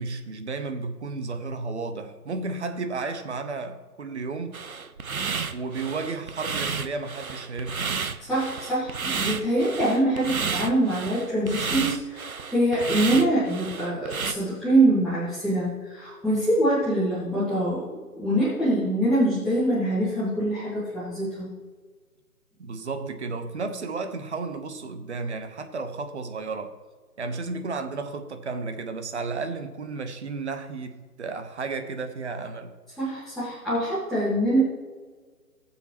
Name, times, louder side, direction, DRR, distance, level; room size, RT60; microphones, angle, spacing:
voice 1, 0.0-4.6 5.5-8.0 22.6-26.8 27.2-32.7, right 4 dB, 45° right, 1.3 m, -33 dB
sound 1, 4.5-14.3, right 5 dB, 65° right, 1.0 m, -31 dB
voice 2, 8.3-17.9 18.1-21.5 33.0-34.6, right 1 dB, ahead, 1.7 m, -24 dB
19.5 x 7.1 x 3.1 m
figure-of-eight pair, 140°, 46 cm